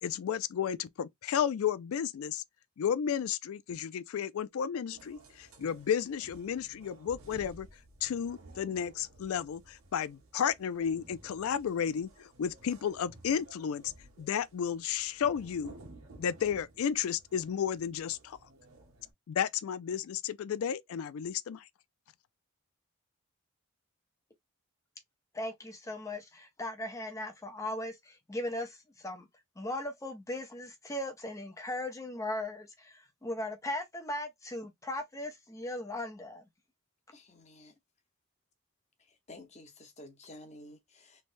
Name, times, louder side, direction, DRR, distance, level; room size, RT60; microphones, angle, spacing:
voice 1, 0.0-2.4 2.8-7.7 8.0-13.9 14.2-15.7 16.2-18.4 19.3-21.7, left 8 dB, 85° left, 0.4 m, -33 dB
sound 1, 4.9-19.1, right 2 dB, 85° right, 1.3 m, -55 dB
voice 2, 25.3-29.3 29.6-36.4, left 1 dB, 15° left, 0.5 m, -38 dB
voice 3, 37.1-37.7 39.1-41.2, left 1 dB, 30° left, 0.9 m, -52 dB
3.3 x 3.2 x 2.5 m
head